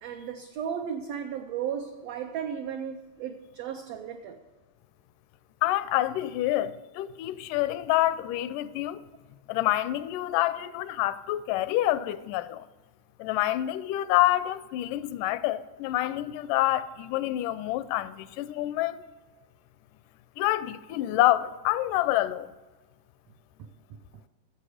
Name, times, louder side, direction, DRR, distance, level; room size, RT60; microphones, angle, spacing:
voice 1, 0.0-4.4 23.6-23.7 24.1-24.2, right 8 dB, 85° right, 1.4 m, -35 dB
voice 2, 5.6-9.1 9.5-12.7 13.2-19.0 20.4-22.5, left 15 dB, 85° left, 2.1 m, -27 dB
13.0 x 7.8 x 5.0 m
omnidirectional pair, 3.6 m